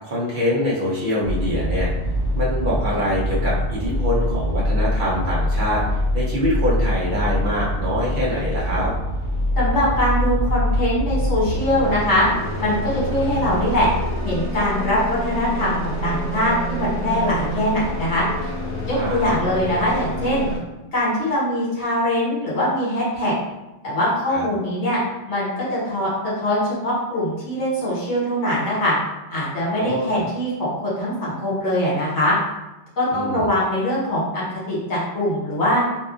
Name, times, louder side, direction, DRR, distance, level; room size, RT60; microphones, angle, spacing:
voice 1, 0.0-1.9 2.3-5.8 6.1-8.9 19.0-19.3 24.3-24.5 29.8-30.1 33.1-33.4, equal, 50° right, -6 dB, 0.7 m, -24 dB
sound 1, 1.2-20.6, left 1 dB, 40° left, 1.1 m, -25 dB
voice 2, 9.6-12.3 12.6-13.9 14.2-18.5 18.8-20.5 20.9-23.3 23.8-25.0 25.3-26.1 26.3-28.9 29.3-32.3 33.0-35.8, left 1 dB, 60° left, -7 dB, 1.3 m, -22 dB
2.7 x 2.3 x 2.4 m, 1.0 s
omnidirectional pair, 1.3 m